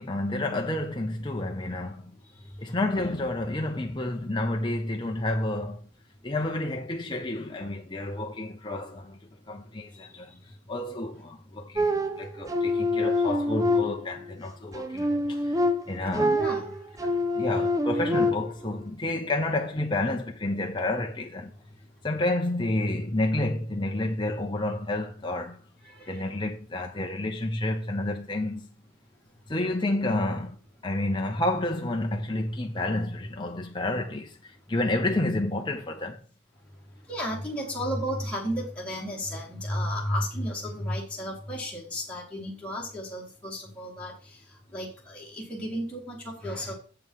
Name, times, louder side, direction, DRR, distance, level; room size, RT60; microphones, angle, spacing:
voice 1, 0.0-2.1 2.6-5.8 6.2-9.2 9.5-10.3 10.7-15.5 15.9-16.4 17.4-21.5 22.0-25.6 26.1-28.7 29.5-30.6 30.8-36.2, left 1 dB, 20° left, 0.7 m, -30 dB
sound 1, 11.8-14.3 14.7-18.7, left 1 dB, 15° right, 0.6 m, -26 dB
voice 2, 16.2-16.7 26.0-26.3 37.1-44.1 44.7-46.7, equal, 5° left, 2.0 m, -33 dB
7.8 x 5.2 x 5.6 m
head